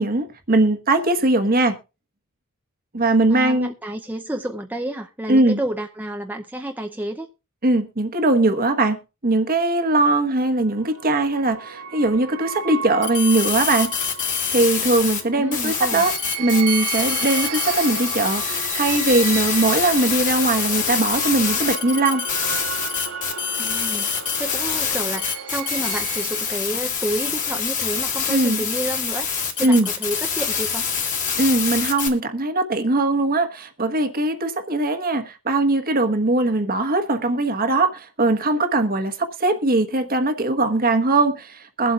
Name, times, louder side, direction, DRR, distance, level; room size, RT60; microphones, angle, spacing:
voice 1, 0.0-1.8 2.9-3.7 5.3-5.6 7.6-13.9 14.5-16.1 16.4-22.2 28.3-28.6 29.6-29.9 31.4-41.9, right 2 dB, 40° right, 1.2 m, -20 dB
voice 2, 3.3-7.3 15.3-16.0 23.6-24.1 24.4-29.3 29.6-30.9, right 1 dB, 10° right, 0.6 m, -30 dB
sound 1, 10.1-26.9, right 7 dB, 85° right, 2.2 m, -34 dB
sound 2, 13.0-15.2 15.5-32.1, left 7 dB, 35° left, 2.3 m, -25 dB
22.5 x 7.8 x 2.4 m
head